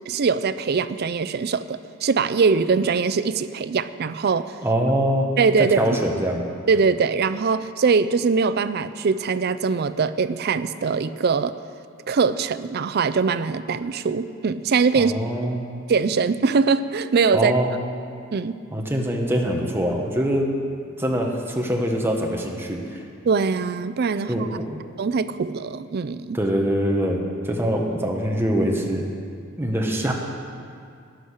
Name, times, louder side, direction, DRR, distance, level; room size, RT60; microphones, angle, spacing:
voice 1, 0.1-4.5 5.4-5.8 6.7-11.5 12.1-15.1 15.4-15.5 15.9-17.5 18.3-18.6 23.2-24.5 25.0-26.4, right 5 dB, 50° right, 14 dB, 0.4 m, -22 dB
voice 2, 4.6-5.3 5.7-6.4 14.9-15.6 17.3-17.7 18.7-20.5 21.0-23.0 24.3-24.8 26.3-29.1 29.6-30.1, equal, 10° right, 0 dB, 1.4 m, -23 dB
14.0 x 10.0 x 6.5 m, 2.3 s
head